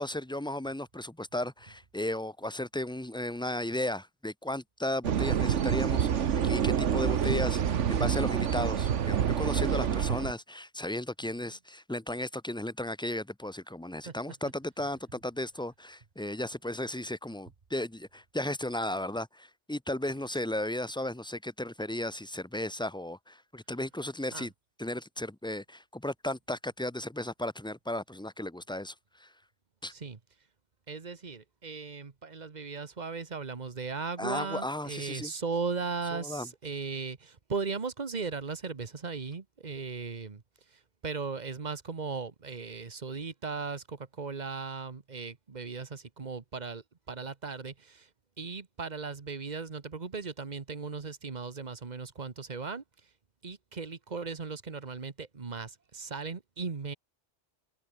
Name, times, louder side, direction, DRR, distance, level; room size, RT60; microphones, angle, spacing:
voice 1, 0.0-24.5 24.8-29.3 29.8-29.9 34.2-35.3 36.1-36.5, left 1 dB, 5° left, 0.5 m, -35 dB
Mallarenga petita i Gafarró, 5.0-10.3, right 8 dB, 80° right, 1.3 m, -27 dB
voice 2, 11.2-11.5 14.0-14.2 24.3-24.5 29.9-30.2 30.9-48.1 48.4-53.1 53.4-56.9, right 4 dB, 40° right, 1.3 m, -37 dB
omnidirectional pair, 1.2 m